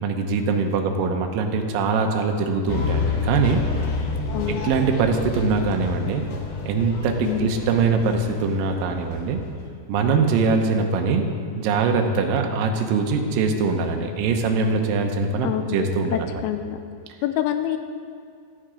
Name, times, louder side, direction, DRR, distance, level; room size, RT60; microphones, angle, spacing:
voice 1, 0.0-3.6 4.6-6.2 6.7-9.4 9.9-11.3 11.6-16.3, right 4 dB, 80° right, 4 dB, 2.0 m, -22 dB
sound 1, 2.7-9.7, left 4 dB, 65° left, 2.1 m, -29 dB
voice 2, 4.3-4.7 7.2-7.6 15.4-16.8 17.2-17.8, left 11 dB, 85° left, 8 dB, 2.2 m, -27 dB
13.0 x 7.5 x 5.0 m, 2.3 s
omnidirectional pair, 4.9 m